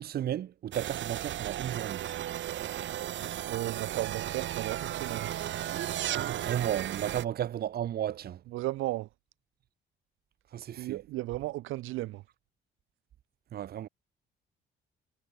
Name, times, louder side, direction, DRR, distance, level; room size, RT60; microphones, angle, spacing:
voice 1, 0.0-2.1 6.3-8.4 10.5-11.0 13.5-13.9, right 11 dB, 50° right, 0.5 m, -33 dB
sound 1, 0.7-7.2, right 12 dB, 70° right, 1.3 m, -35 dB
voice 2, 3.5-5.7 8.5-9.1 10.8-12.2, right 17 dB, 90° right, 0.7 m, -35 dB
cardioid pair, 90°, 20 cm